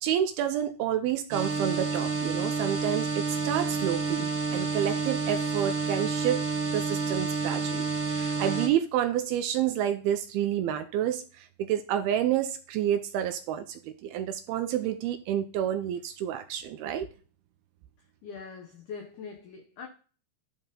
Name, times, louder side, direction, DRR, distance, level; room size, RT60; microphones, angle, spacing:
voice 1, 0.0-6.4 6.7-17.1, right 10 dB, 80° right, 2.3 m, -29 dB
sound 1, 1.3-8.7, right 4 dB, 45° right, 3.1 m, -29 dB
voice 2, 18.2-19.9, left 5 dB, 85° left, 1.7 m, -42 dB
11.5 x 4.1 x 3.8 m
omnidirectional pair, 4.8 m